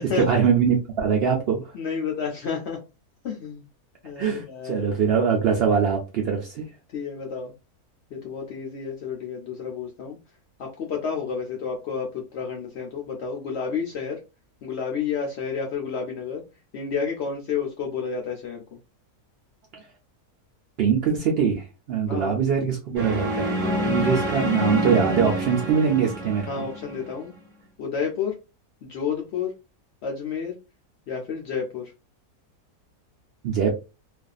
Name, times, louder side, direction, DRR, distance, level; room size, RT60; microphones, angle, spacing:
voice 1, 0.1-1.7 4.2-6.6 19.7-19.8 20.8-26.5 33.4-33.8, right 6 dB, 85° right, 0.5 m, -23 dB
voice 2, 1.7-2.8 3.2-3.6 4.0-4.9 6.9-7.5 8.1-10.2 10.6-14.2 14.6-16.4 16.7-18.6 22.1-22.4 23.6-24.0 26.5-27.3 27.8-28.4 28.8-29.5 30.0-30.6 31.1-31.9, left 6 dB, 75° left, 0.6 m, -30 dB
sound 1, 22.9-27.1, equal, 20° right, 1.0 m, -27 dB
2.5 x 2.3 x 2.3 m
omnidirectional pair, 1.6 m